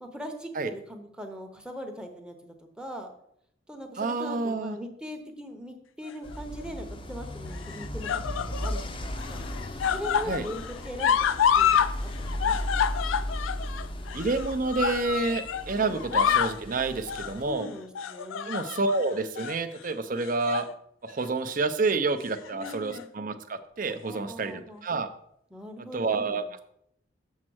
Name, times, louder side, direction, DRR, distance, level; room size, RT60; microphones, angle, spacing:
voice 1, 0.0-3.1 3.7-8.2 8.5-9.4 9.9-12.8 15.8-16.4 16.7-16.8 17.4-18.5 22.5-23.1 24.0-24.8 25.5-26.5, equal, 5° right, 4 dB, 0.8 m, -41 dB
voice 2, 4.0-4.8 10.3-10.4 14.1-17.7 18.4-20.7 21.0-25.1 25.9-26.6, right 3 dB, 45° right, 10 dB, 0.6 m, -29 dB
sound 1, 6.1-6.6 7.5-8.8 9.2-11.9 12.2-15.7 16.0-16.6 17.1-17.4 18.0-19.0 19.4-19.6 20.2-20.7 21.1-21.3 22.4-23.0 23.9-24.0, left 8 dB, 80° left, 0.4 m, -28 dB
sound 2, 6.2-17.5, left 1 dB, 25° left, 0.5 m, -37 dB
sound 3, 8.4-15.2, equal, 70° right, 1.0 m, -45 dB
7.3 x 4.3 x 6.2 m, 0.73 s
head